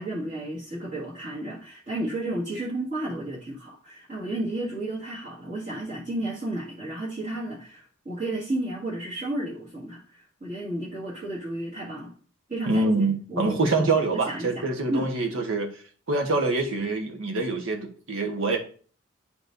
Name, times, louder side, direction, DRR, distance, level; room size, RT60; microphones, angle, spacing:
voice 1, 0.0-12.1 12.5-13.0 13.3-14.6 14.9-15.1, right 1 dB, 40° right, 1.9 m, -32 dB
voice 2, 12.7-15.7 16.1-18.6, right 3 dB, 80° right, 1.2 m, -25 dB
10.0 x 4.8 x 2.6 m
head